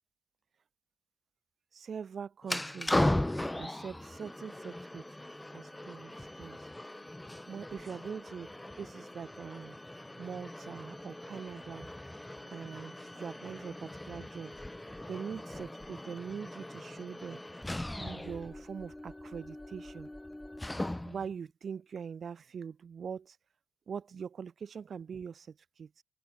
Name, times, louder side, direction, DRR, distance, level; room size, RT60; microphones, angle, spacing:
voice 1, 1.7-3.1 3.5-5.1 5.5-6.7 7.5-8.5 8.8-11.9 12.5-14.5 15.1-17.4 18.0-20.1 21.0-23.4 23.9-26.0, right 6 dB, 50° right, 5.0 m, -43 dB
sound 1, 2.4-21.3, left 1 dB, 10° left, 1.4 m, -38 dB
cardioid pair, 90°, 0 cm